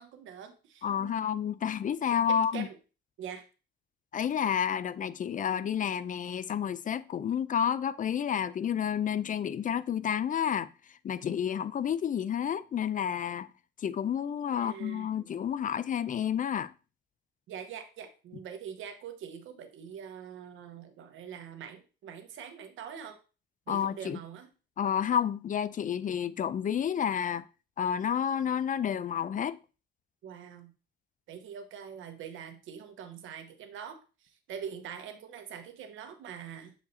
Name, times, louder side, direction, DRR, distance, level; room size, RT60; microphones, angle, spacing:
voice 1, 0.0-1.1 2.3-2.8 3.2-3.5 14.5-15.3 17.5-23.2 23.7-24.5 30.2-30.7 31.3-36.7, right 8 dB, 80° right, 1.1 m, -44 dB
voice 2, 0.8-2.7 4.1-10.7 11.0-13.5 13.8-16.7 23.7-24.2 24.8-27.4 27.8-29.6, left 8 dB, 40° left, 0.4 m, -30 dB
7.8 x 4.9 x 2.7 m
cardioid pair, 90°, 20 cm